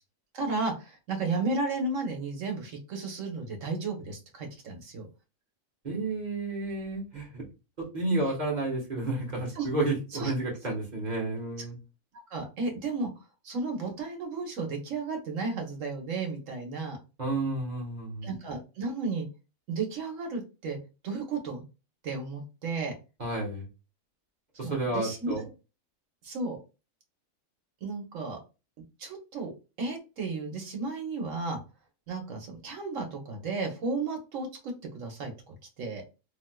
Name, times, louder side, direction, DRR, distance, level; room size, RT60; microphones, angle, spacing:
voice 1, 0.3-5.1 9.5-9.7 10.1-10.3 12.3-17.0 18.2-19.3 19.7-20.8 21.0-21.6 22.0-22.9 24.6-25.3 26.2-26.6 27.8-28.4 29.0-29.5 29.8-31.6 32.1-36.0, right 3 dB, 70° right, 2 dB, 1.3 m, -33 dB
voice 2, 5.8-7.5 7.8-11.8 17.2-18.3 23.2-23.7 24.6-25.4, right 2 dB, 35° right, -2 dB, 1.3 m, -31 dB
3.4 x 3.0 x 2.2 m, 0.29 s
omnidirectional pair, 1.4 m